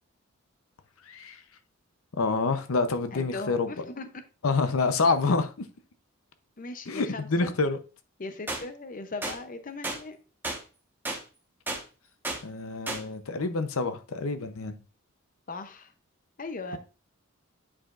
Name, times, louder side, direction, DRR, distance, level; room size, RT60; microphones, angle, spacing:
voice 1, 1.1-1.4 2.2-3.7 4.4-5.5 6.9-7.8 12.4-14.8, left 3 dB, 85° left, 9 dB, 0.7 m, -27 dB
voice 2, 3.1-4.1 6.6-7.5 8.2-10.2 15.5-15.9 16.4-16.8, left 3 dB, 40° left, 9 dB, 0.7 m, -38 dB
sound 1, 8.5-8.6 9.2-9.4 9.8-10.0 10.4-10.6 11.1-11.2 11.7-11.8 12.2-12.4 12.9-13.0, right 2 dB, 10° right, 1.2 m, -32 dB
8.8 x 4.9 x 2.5 m, 0.33 s
head